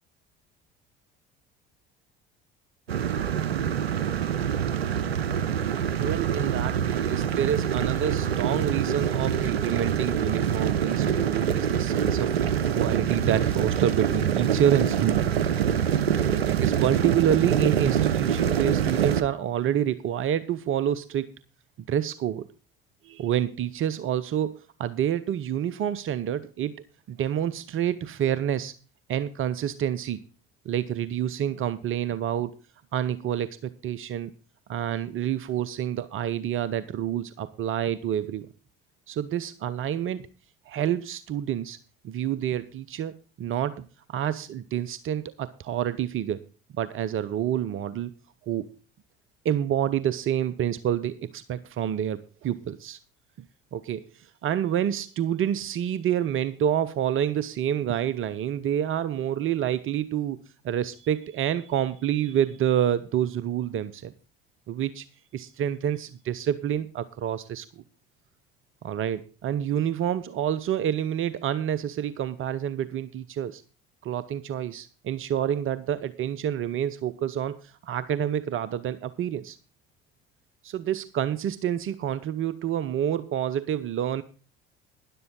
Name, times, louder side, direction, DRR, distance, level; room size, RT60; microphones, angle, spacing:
sound 1, 2.9-19.2, right 8 dB, 85° right, 0.6 m, -25 dB
voice 1, 5.8-15.3 16.3-21.3 21.9-22.5 23.0-26.7 27.1-28.7 29.1-30.2 30.6-32.5 32.9-34.3 34.7-38.5 39.1-40.3 40.7-41.8 42.0-46.4 46.8-48.1 48.5-48.7 49.4-53.0 53.7-64.1 64.7-65.0 65.3-67.8 68.8-73.6 74.0-79.6 80.6-84.2, right 10 dB, 45° right, 15 dB, 0.8 m, -28 dB
12.0 x 11.0 x 3.7 m, 0.35 s
figure-of-eight pair, 60°, 30 cm